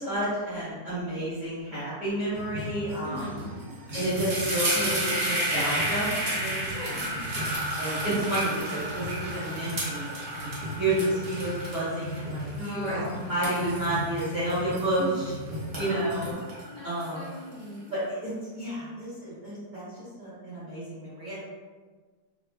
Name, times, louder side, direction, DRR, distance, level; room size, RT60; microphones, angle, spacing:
voice 1, 0.0-3.3 3.9-6.7 7.8-13.0 13.3-15.4 15.7-16.3 16.8-17.3 17.9-21.4, right 1 dB, 30° right, -11 dB, 1.2 m, -30 dB
sound 1, 2.3-16.3, equal, 70° right, 1.2 m, -39 dB
voice 2, 3.0-3.6 6.7-7.2 12.6-13.8 15.7-16.4 16.7-17.9, left 1 dB, 65° left, -7 dB, 0.9 m, -40 dB
sound 2, 3.2-3.4 3.7-15.2 15.6-17.5, right 1 dB, 45° right, 0.7 m, -32 dB
3.1 x 2.1 x 3.2 m, 1.4 s
omnidirectional pair, 2.0 m